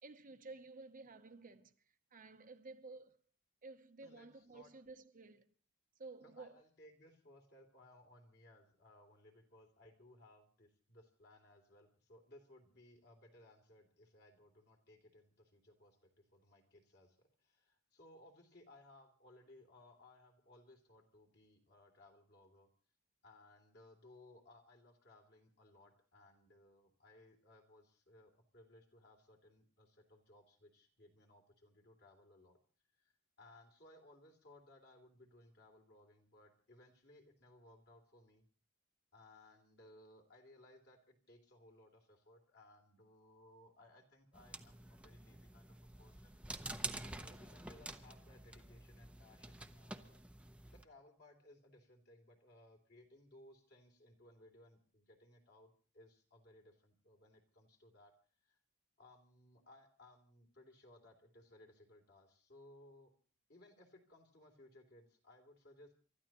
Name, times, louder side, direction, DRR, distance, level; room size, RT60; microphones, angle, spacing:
voice 1, 0.0-3.2 3.6-5.5 6.0-6.6, right 3 dB, 40° right, 0.8 m, -54 dB
voice 2, 4.0-4.7 6.2-22.7 23.2-32.6 33.0-38.5 39.1-46.4 46.9-50.2 50.7-58.1 58.4-58.6 59.0-63.1 63.5-65.9, left 1 dB, 50° left, 3.1 m, -63 dB
sound 1, 44.3-50.8, right 2 dB, 5° right, 0.7 m, -48 dB
28.5 x 13.0 x 3.0 m
head